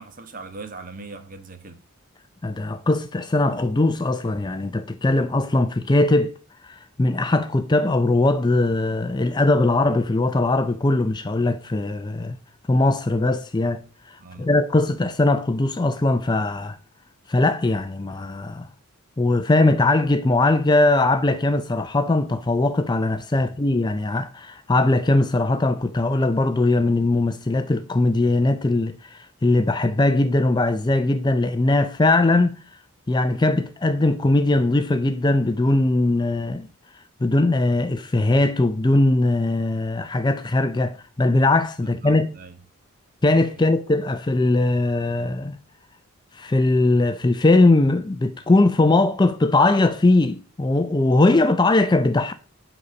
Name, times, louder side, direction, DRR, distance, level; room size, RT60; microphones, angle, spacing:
voice 1, 0.0-1.8 14.2-14.5 23.3-23.5 41.8-42.6 43.6-43.7, right 3 dB, 40° right, 1.3 m, -40 dB
voice 2, 2.4-6.3 6.6-12.4 12.7-16.8 17.3-18.7 19.2-32.6 33.1-36.7 37.2-42.3 43.2-45.6 46.3-52.3, left 2 dB, 20° left, 0.4 m, -20 dB
10.0 x 4.1 x 6.8 m
head